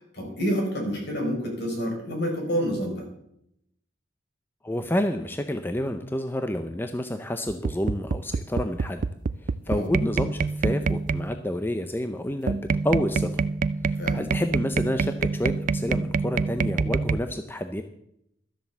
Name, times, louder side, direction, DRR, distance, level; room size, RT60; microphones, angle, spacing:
voice 1, 0.1-3.1 9.7-9.9 13.9-14.2, equal, 60° left, 1 dB, 4.8 m, -28 dB
voice 2, 4.6-9.0 9.4-12.6 12.8-13.4 13.9-17.8, left 1 dB, 10° left, 7 dB, 0.6 m, -29 dB
sound 1, 7.5-11.4 12.5-17.2, right 4 dB, 45° right, 0.4 m, -26 dB
13.0 x 7.6 x 7.2 m, 0.75 s
head